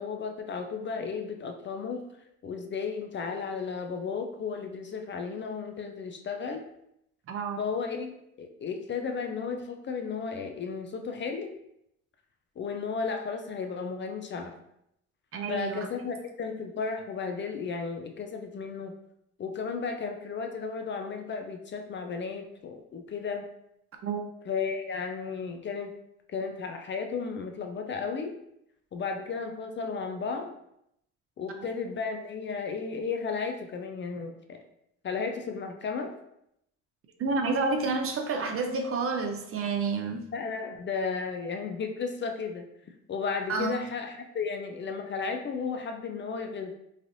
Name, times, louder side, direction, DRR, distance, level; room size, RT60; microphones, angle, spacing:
voice 1, 0.0-2.0 2.4-6.6 7.6-11.5 12.6-14.5 15.5-18.9 19.4-23.5 24.5-25.9 26.3-28.4 28.9-30.6 31.4-34.6 35.0-36.1 40.3-42.7 43.1-46.7, left 5 dB, 40° left, 5 dB, 0.4 m, -34 dB
voice 2, 7.3-7.6 15.3-15.9 24.0-24.3 31.6-31.7 37.2-40.3 43.5-43.8, right 4 dB, 50° right, 4 dB, 0.5 m, -29 dB
3.2 x 2.5 x 2.5 m, 0.78 s
cardioid pair, 90°, 30 cm